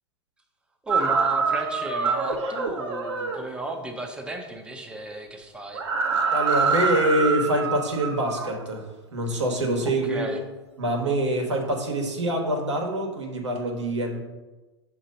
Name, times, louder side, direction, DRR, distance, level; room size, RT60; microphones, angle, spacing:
voice 1, 0.8-5.8 9.8-10.4, right 1 dB, 5° right, 2 dB, 0.7 m, -34 dB
sound 1, 0.9-3.4 5.7-8.6, right 4 dB, 70° right, 1.1 m, -25 dB
voice 2, 6.3-10.3 10.8-14.2, right 1 dB, 90° right, 1 dB, 1.3 m, -25 dB
6.3 x 3.0 x 5.2 m, 1.2 s
hypercardioid pair, 105°, 15 cm